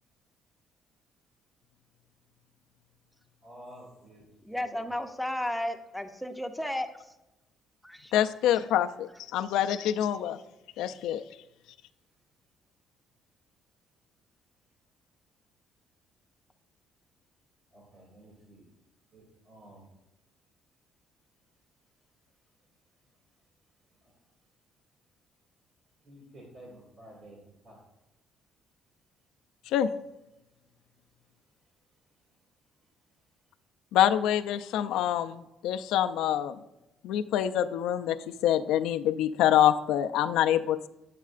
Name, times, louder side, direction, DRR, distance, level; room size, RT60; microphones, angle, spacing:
voice 1, 3.4-4.8 17.7-18.6 19.1-19.9 26.0-27.4 27.6-27.8, right 1 dB, 55° right, 2.4 m, -51 dB
voice 2, 4.4-7.2 7.8-8.1, left 1 dB, ahead, 0.6 m, -33 dB
voice 3, 8.1-10.4 10.8-11.2 29.7-29.9 33.9-36.6 37.0-38.2 38.4-40.9, left 11 dB, 90° left, 0.3 m, -26 dB
9.1 x 7.4 x 2.4 m
cardioid pair, 125°, 0 cm